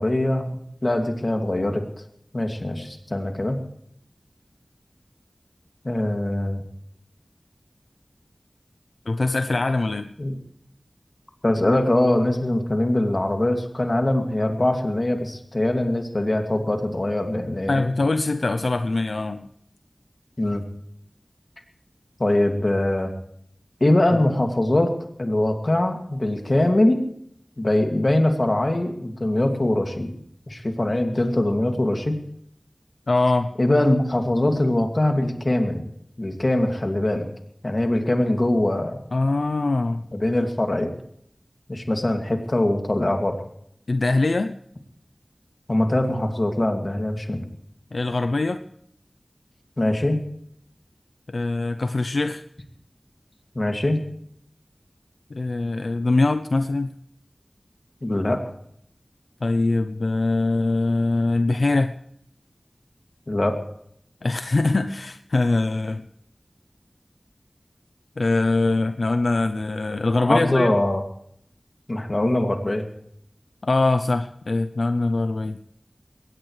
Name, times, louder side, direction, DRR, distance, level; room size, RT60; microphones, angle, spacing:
voice 1, 0.0-1.8 2.3-3.6 5.8-6.6 10.2-10.3 11.4-17.8 20.4-20.6 22.2-23.1 23.8-24.9 25.2-27.0 27.6-30.1 30.5-32.2 33.6-35.8 36.2-37.3 37.6-39.0 40.1-40.9 41.7-43.4 45.7-47.4 49.8-50.2 53.5-54.0 58.0-58.4 63.3-63.6 70.2-71.0 71.9-72.8, left 1 dB, 50° left, 4 dB, 2.3 m, -22 dB
voice 2, 9.1-10.1 17.7-19.5 33.1-33.5 39.1-40.1 43.9-44.5 47.9-48.6 51.3-52.4 55.3-56.9 59.4-61.9 64.2-66.1 68.2-70.8 73.6-75.6, left 2 dB, 80° left, 9 dB, 0.6 m, -22 dB
21.5 x 18.0 x 3.3 m, 0.70 s
wide cardioid pair, 55°, 0 cm